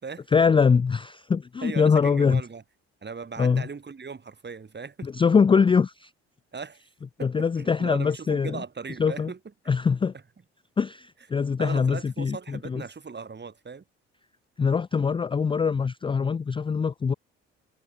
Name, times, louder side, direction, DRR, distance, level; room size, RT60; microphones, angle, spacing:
voice 1, 0.3-2.4 3.4-3.6 5.0-6.1 7.2-8.6 9.0-9.3 9.7-10.1 10.8-12.8 14.6-17.1, left 5 dB, 15° left, 0.4 m, -23 dB
voice 2, 1.6-2.6 3.0-5.1 6.5-6.8 7.2-9.4 11.6-13.8, right 5 dB, 30° right, 4.8 m, -38 dB
hypercardioid pair, 55°, 33 cm